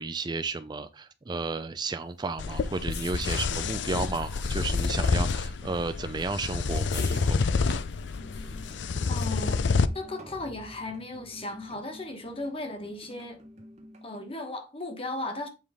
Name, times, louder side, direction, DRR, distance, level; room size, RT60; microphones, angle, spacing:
voice 1, 0.0-7.4, right 3 dB, 25° right, 0.4 m, -33 dB
sound 1, 2.1-9.6, left 5 dB, 65° left, 1.4 m, -46 dB
sound 2, 2.4-9.9, left 4 dB, 90° left, 0.5 m, -28 dB
sound 3, 8.1-14.3, equal, 40° right, 1.1 m, -49 dB
voice 2, 9.1-9.6 9.9-13.4 14.0-15.5, left 2 dB, 30° left, 1.3 m, -36 dB
7.4 x 4.7 x 3.6 m
head